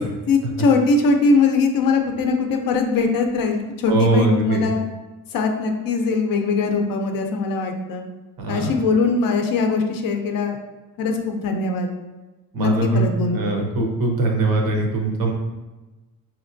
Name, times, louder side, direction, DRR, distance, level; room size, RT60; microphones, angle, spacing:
voice 1, 0.3-4.8 5.3-8.0 8.5-10.6 11.0-11.9 12.6-13.4, left 4 dB, 60° left, 4 dB, 0.6 m, -21 dB
voice 2, 3.9-4.6 8.4-8.7 12.5-15.3, right 3 dB, 60° right, 1 dB, 0.8 m, -21 dB
5.1 x 2.9 x 2.5 m, 1.1 s
cardioid pair, 160°, 39 cm